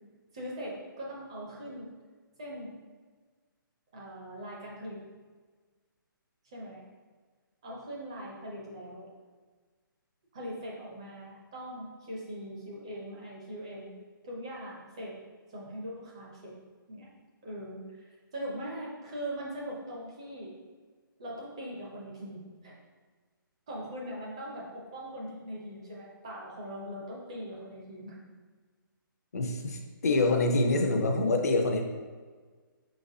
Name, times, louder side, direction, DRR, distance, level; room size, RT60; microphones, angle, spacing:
voice 1, 0.3-1.9 2.4-2.7 3.9-5.0 6.4-6.8 7.6-9.1 10.3-15.2 15.5-16.5 16.9-17.1 17.4-20.5 21.2-22.7 23.7-28.2, equal, 15° right, -4 dB, 0.4 m, -41 dB
voice 2, 29.3-31.8, left 2 dB, 45° left, 4 dB, 0.5 m, -26 dB
4.7 x 3.9 x 2.6 m, 1.4 s
hypercardioid pair, 175°, 12 cm